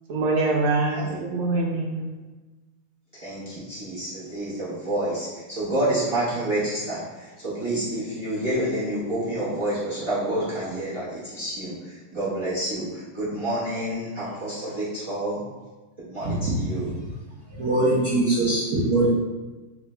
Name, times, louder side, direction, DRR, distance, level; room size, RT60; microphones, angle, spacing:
voice 1, 0.1-2.1, right 3 dB, 85° right, 0 dB, 1.5 m, -24 dB
voice 2, 0.9-1.4 3.1-15.4 16.0-16.9, right 1 dB, 50° right, -11 dB, 0.3 m, -29 dB
voice 3, 17.6-19.1, right 2 dB, 65° right, -9 dB, 1.0 m, -22 dB
3.2 x 2.7 x 3.2 m, 1.2 s
omnidirectional pair, 2.3 m